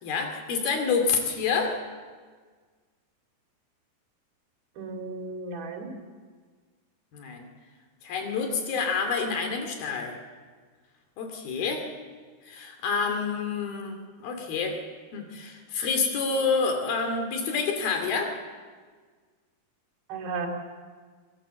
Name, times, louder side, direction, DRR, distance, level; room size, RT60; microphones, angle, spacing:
voice 1, 0.0-1.8 7.1-7.5 8.0-10.2 11.2-11.9 12.4-14.8 15.1-18.3, left 5 dB, 65° left, 5 dB, 4.3 m, -28 dB
voice 2, 4.8-5.9 20.1-20.5, right 4 dB, 65° right, 2 dB, 4.3 m, -34 dB
22.5 x 19.5 x 7.6 m, 1.6 s
omnidirectional pair, 4.7 m